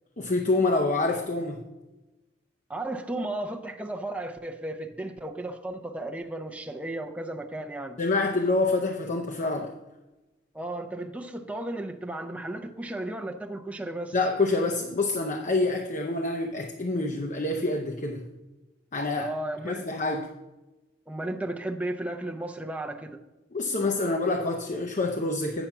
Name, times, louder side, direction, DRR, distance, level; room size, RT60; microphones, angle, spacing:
voice 1, 0.2-1.6 8.0-9.7 14.1-18.3 18.9-19.3 19.6-20.3 23.5-25.7, left 2 dB, 40° left, 0.6 m, -27 dB
voice 2, 2.7-8.0 10.5-14.2 19.2-19.9 21.1-23.2, right 1 dB, 10° right, 0.6 m, -34 dB
8.9 x 5.6 x 5.9 m
head